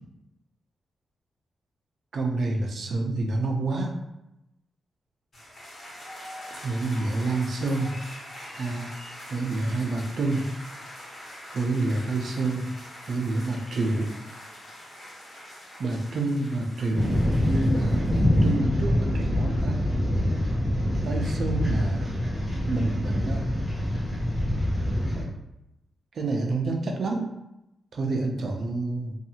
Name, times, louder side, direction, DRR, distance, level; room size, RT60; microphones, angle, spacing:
voice 1, 2.1-3.9 6.5-7.9 8.6-8.9 9.3-10.5 11.4-12.7 13.1-14.1 15.8-17.2 17.4-18.1 18.4-19.8 21.0-22.2 22.7-23.5 25.1-25.2 26.1-27.3 27.9-29.2, right 2 dB, 55° right, 2 dB, 0.4 m, -28 dB
sound 1, 5.3-18.5, left 1 dB, 40° left, 1.0 m, -43 dB
sound 2, 16.9-25.2, left 1 dB, 5° left, 0.7 m, -25 dB
2.6 x 2.3 x 2.8 m, 0.89 s
wide cardioid pair, 145°, 0 cm